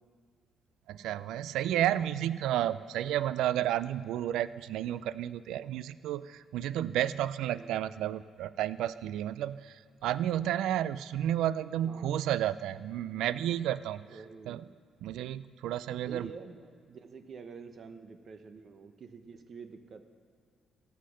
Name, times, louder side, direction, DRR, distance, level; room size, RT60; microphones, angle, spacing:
voice 1, 0.9-14.1 14.5-14.6 15.0-16.3, right 12 dB, 85° right, 16 dB, 0.3 m, -32 dB
voice 2, 7.4-8.1 11.9-12.1 14.1-14.6 15.8-20.0, right 5 dB, 50° right, 8 dB, 0.9 m, -48 dB
16.5 x 5.8 x 6.5 m, 2.2 s
cardioid pair, 90°, 0 cm